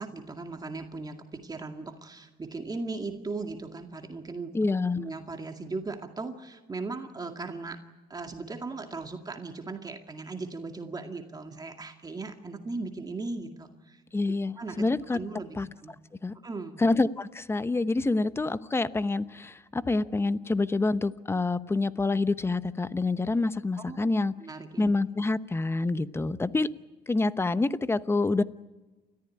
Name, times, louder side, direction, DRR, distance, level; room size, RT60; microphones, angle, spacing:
voice 1, 0.0-4.6 5.0-7.8 8.1-14.0 14.6-14.8 15.1-16.0 16.4-16.8 23.9-24.1 24.4-24.9, right 3 dB, 25° right, 5 dB, 2.1 m, -38 dB
voice 2, 4.5-5.0 14.1-15.2 15.5-15.7 16.2-16.3 16.8-24.3 24.8-26.7 27.1-28.4, left 3 dB, 15° left, 14 dB, 0.9 m, -27 dB
30.0 x 14.5 x 9.8 m, 1.1 s
cardioid pair, 110°, 17 cm